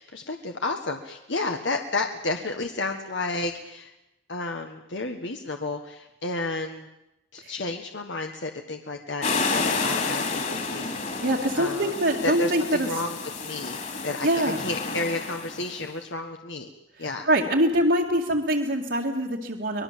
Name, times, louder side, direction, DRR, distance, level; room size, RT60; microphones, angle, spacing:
voice 1, 0.0-3.9 4.3-6.9 7.3-11.0 11.5-11.9 12.2-16.7 17.0-17.3, left 2 dB, 80° left, 4 dB, 1.5 m, -31 dB
sound 1, 9.2-15.8, left 4 dB, 40° left, 3.2 m, -30 dB
voice 2, 11.2-12.9 14.2-14.7 17.0-19.8, right 1 dB, 70° right, -3 dB, 2.2 m, -24 dB
24.5 x 20.5 x 7.5 m, 0.90 s
head